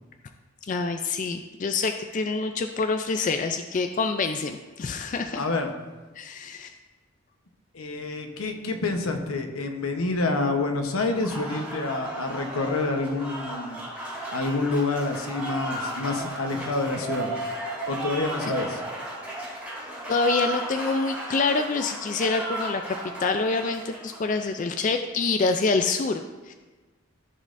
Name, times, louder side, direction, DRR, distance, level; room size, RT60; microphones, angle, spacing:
voice 1, 0.7-5.4 6.2-6.7 20.1-26.5, left 4 dB, 35° left, 6 dB, 0.3 m, -26 dB
voice 2, 5.4-5.7 7.7-13.8 14.3-17.3 17.9-18.8, left 3 dB, 85° left, 5 dB, 0.9 m, -27 dB
Applause, 10.9-24.6, right 1 dB, 5° right, 2.4 m, -35 dB
14.0 x 5.3 x 2.6 m, 1.2 s
head